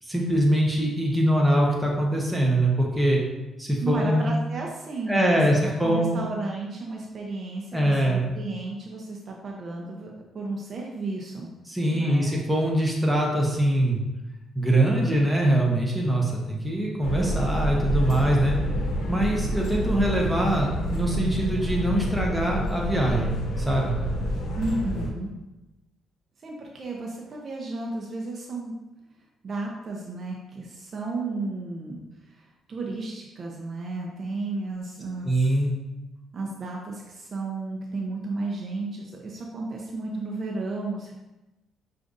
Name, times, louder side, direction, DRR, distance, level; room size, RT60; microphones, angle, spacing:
voice 1, 0.0-3.2 3.6-4.3 5.1-6.2 7.7-8.2 11.7-14.0 14.5-18.6 19.1-23.9 35.2-35.7, right 1 dB, 5° right, -3 dB, 0.8 m, -23 dB
voice 2, 3.8-11.5 11.9-12.4 24.5-25.3 26.4-28.7 29.4-32.0 32.3-35.5 36.3-41.1, right 3 dB, 50° right, -1 dB, 0.6 m, -33 dB
sound 1, 17.0-25.1, equal, 75° left, 0.7 m, -28 dB
6.3 x 2.5 x 2.5 m, 1.0 s
cardioid pair, 90°, 0 cm